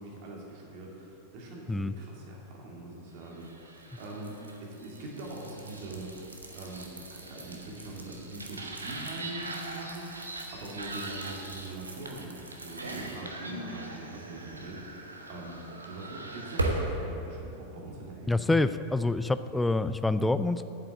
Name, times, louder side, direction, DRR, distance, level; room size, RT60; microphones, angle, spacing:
voice 1, 0.0-15.6 15.8-18.5, right 2 dB, 45° right, -2 dB, 2.4 m, -43 dB
sound 1, 3.4-17.0, right 2 dB, 75° right, 1.1 m, -39 dB
voice 2, 18.3-20.6, left 2 dB, 5° left, 12 dB, 0.4 m, -26 dB
9.0 x 7.6 x 7.3 m, 3.0 s
figure-of-eight pair, 90°, 0 cm